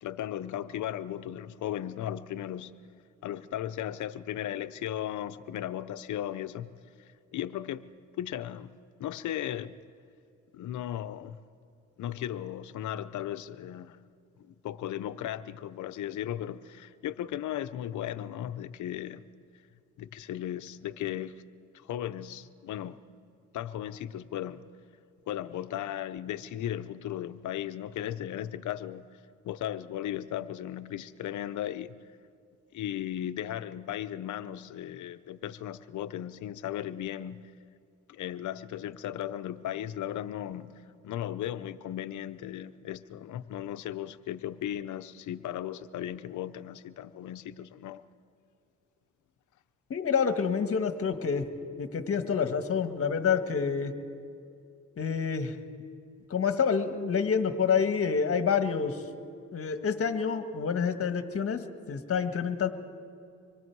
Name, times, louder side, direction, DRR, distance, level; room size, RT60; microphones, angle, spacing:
voice 1, 0.0-2.8 3.2-6.7 7.3-7.9 8.2-9.7 10.5-11.4 12.0-14.0 14.5-19.3 20.0-21.4 21.8-23.0 23.5-24.6 25.3-29.1 29.4-32.0 32.7-37.5 38.1-48.0, left 11 dB, 75° left, 0.8 m, -36 dB
voice 2, 49.9-51.4 51.8-53.9 55.0-55.6 56.3-59.0 59.5-62.7, left 6 dB, 50° left, 1.6 m, -28 dB
25.5 x 22.5 x 4.7 m
cardioid pair, 90°, 30 cm